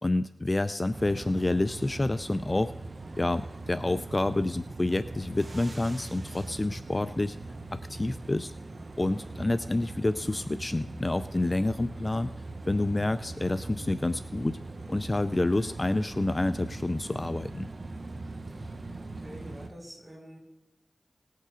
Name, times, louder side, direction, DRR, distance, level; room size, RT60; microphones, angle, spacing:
voice 1, 0.0-2.7 3.2-7.4 7.7-8.5 9.0-12.3 12.7-14.6 14.9-17.7, left 2 dB, 35° left, 12 dB, 0.4 m, -28 dB
sound 1, 0.9-19.7, right 2 dB, 55° right, 0.9 m, -41 dB
voice 2, 18.6-20.4, equal, 25° right, 0 dB, 5.2 m, -48 dB
19.0 x 6.7 x 5.0 m, 0.98 s
cardioid pair, 45°, 0 cm